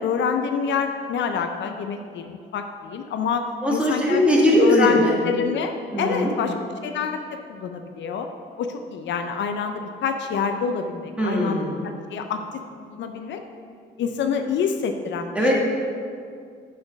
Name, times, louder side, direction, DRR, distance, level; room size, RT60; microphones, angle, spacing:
voice 1, 0.0-3.4 3.7-4.2 4.5-5.7 6.0-6.5 6.8-8.3 8.6-11.6 12.1-12.4 12.9-13.4 14.0-15.5, left 6 dB, 70° left, 6 dB, 0.5 m, -27 dB
voice 2, 3.6-5.2 5.9-6.3 11.2-11.8 15.3-15.5, left 1 dB, 5° right, -3 dB, 1.7 m, -20 dB
6.5 x 4.2 x 5.8 m, 2.2 s
cardioid pair, 90°, 20 cm